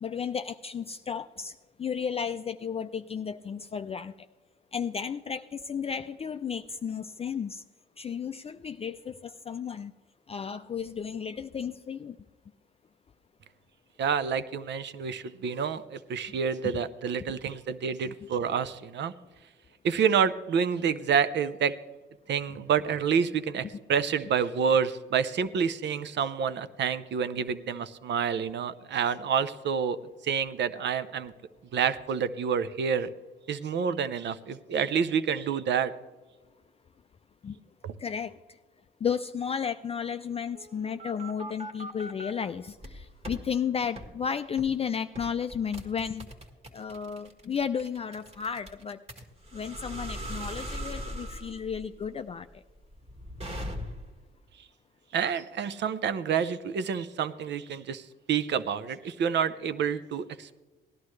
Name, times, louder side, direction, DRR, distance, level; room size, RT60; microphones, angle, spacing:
voice 1, 0.0-4.1 4.7-7.6 8.0-9.9 10.3-12.2 18.1-18.2 37.4-37.6 38.0-38.4 39.0-46.3 46.7-49.0 49.5-52.6, left 7 dB, 30° left, 9 dB, 0.4 m, -33 dB
voice 2, 14.0-19.1 19.8-21.7 22.3-30.0 30.2-31.3 31.7-33.1 33.5-35.9 37.8-37.9 55.1-60.6, right 7 dB, 65° right, 14 dB, 0.7 m, -28 dB
sound 1, 40.5-42.3 42.8-43.4 44.0-44.1 44.6-44.8 45.2-54.2, equal, 30° right, 1.8 m, -40 dB
18.0 x 11.5 x 3.2 m, 1.3 s
cardioid pair, 90°, 20 cm